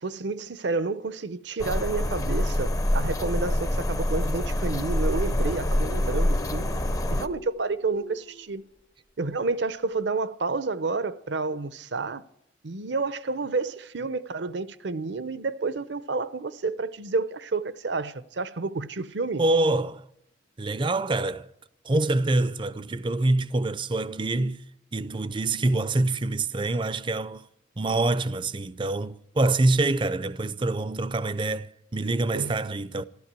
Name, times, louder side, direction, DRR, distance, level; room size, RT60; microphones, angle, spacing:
voice 1, 0.0-6.7 7.1-8.6 9.2-12.2 12.6-19.4 32.3-32.5, right 3 dB, 65° right, 0.7 m, -30 dB
sound 1, 1.6-7.3, left 1 dB, 15° left, 0.6 m, -26 dB
sound 2, 4.9-8.9, left 1 dB, 75° left, 2.4 m, -44 dB
voice 2, 19.4-20.1 20.6-21.5 21.8-24.6 24.9-27.5 27.8-33.1, right 2 dB, 25° right, 0.5 m, -25 dB
14.0 x 12.5 x 7.5 m
head